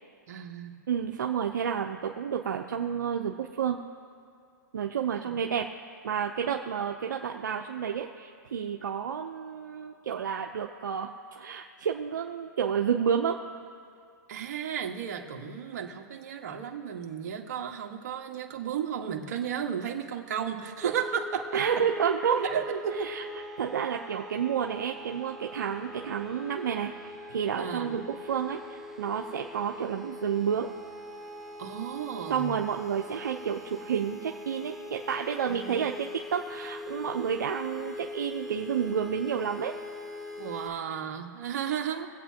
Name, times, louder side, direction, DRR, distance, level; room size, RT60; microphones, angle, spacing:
voice 1, 0.3-0.8 5.2-5.3 14.3-21.8 22.4-23.1 27.6-28.1 31.6-32.5 35.5-35.8 40.4-42.1, right 8 dB, 60° right, 2 dB, 1.7 m, -34 dB
voice 2, 0.9-3.8 4.7-5.7 6.0-13.4 21.5-23.2 23.6-30.7 32.3-39.7, right 8 dB, 85° right, 2 dB, 0.8 m, -30 dB
sound 1, 20.8-40.7, left 2 dB, ahead, 1.0 m, -42 dB
24.5 x 8.5 x 3.0 m, 2.3 s
hypercardioid pair, 140°, 10 cm